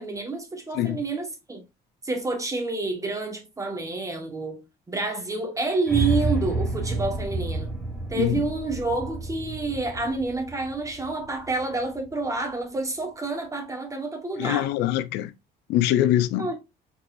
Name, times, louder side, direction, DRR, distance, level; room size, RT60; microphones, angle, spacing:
voice 1, 0.0-1.6 2.0-7.7 8.1-14.7 16.4-16.5, right 3 dB, 20° right, 1.6 m, -29 dB
sound 1, 5.9-12.0, right 2 dB, 5° right, 2.1 m, -30 dB
voice 2, 14.4-15.3 15.7-16.5, left 13 dB, 90° left, 0.5 m, -23 dB
4.7 x 4.0 x 2.6 m
cardioid pair, 110°, 17 cm